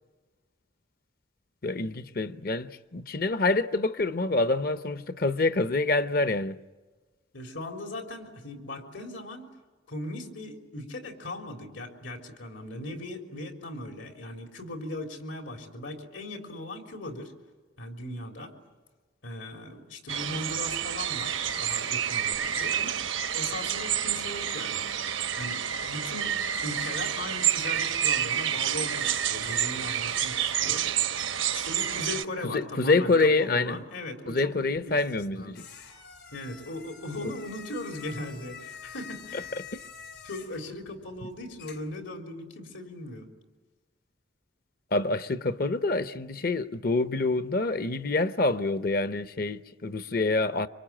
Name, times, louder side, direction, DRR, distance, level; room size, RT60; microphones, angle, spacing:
voice 1, 1.6-6.6 32.4-33.8 34.3-35.6 37.2-37.3 39.3-39.4 39.7-39.8 41.2-41.3 44.9-50.7, left 3 dB, 50° left, 0.8 m, -26 dB
voice 2, 7.3-9.5 9.9-17.3 17.8-18.5 19.2-23.0 23.3-30.9 31.5-35.0 35.3-35.6 36.3-39.5 40.2-43.3, left 1 dB, 80° left, 3.7 m, -39 dB
sound 1, 20.1-32.2, right 9 dB, 85° right, 1.0 m, -29 dB
sound 2, 34.8-42.0, left 7 dB, 65° left, 3.5 m, -47 dB
26.0 x 25.5 x 8.8 m
head